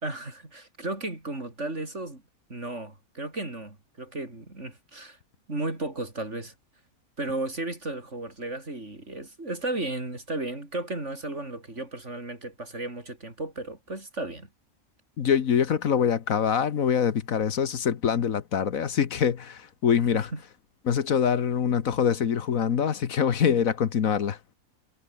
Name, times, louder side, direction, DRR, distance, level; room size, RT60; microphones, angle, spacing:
voice 1, 0.0-2.2 2.5-5.2 5.5-6.5 7.2-14.5 20.1-20.4, right 2 dB, 50° right, 5.4 m, -34 dB
voice 2, 15.2-20.3 20.9-24.4, left 7 dB, 65° left, 1.6 m, -24 dB
omnidirectional pair, 1.5 m